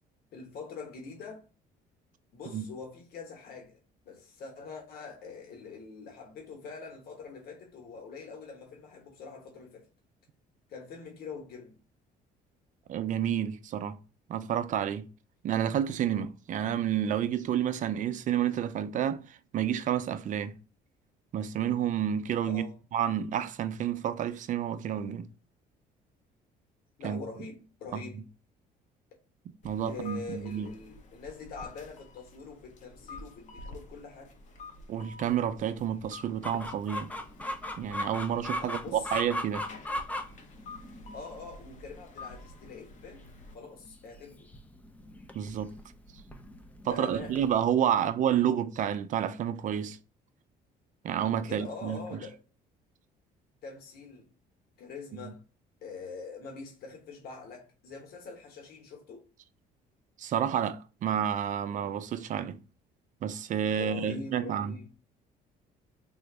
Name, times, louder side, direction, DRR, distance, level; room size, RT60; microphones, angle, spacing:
voice 1, 0.3-1.4 2.3-3.8 4.0-9.9 10.7-11.8 22.5-22.7 27.0-28.2 29.8-34.3 38.6-39.1 41.1-44.5 46.8-47.4 47.9-48.0 51.4-52.4 53.6-54.3 54.8-55.4 55.8-59.2 63.8-64.9, left 4 dB, 65° left, 1.1 m, -44 dB
voice 2, 12.9-14.0 14.3-15.1 15.4-20.6 21.3-22.6 22.9-25.3 27.0-27.2 27.9-28.2 29.6-30.7 34.9-37.1 37.8-39.7 45.3-45.7 46.8-50.0 51.0-52.2 60.2-62.6 63.2-64.8, right 9 dB, 50° right, 0.4 m, -30 dB
sound 1, 29.6-43.5, left 3 dB, 45° left, 0.7 m, -49 dB
Chicken rooster, 36.4-47.5, left 1 dB, 10° left, 0.5 m, -39 dB
3.7 x 2.0 x 3.2 m
cardioid pair, 110°, 17 cm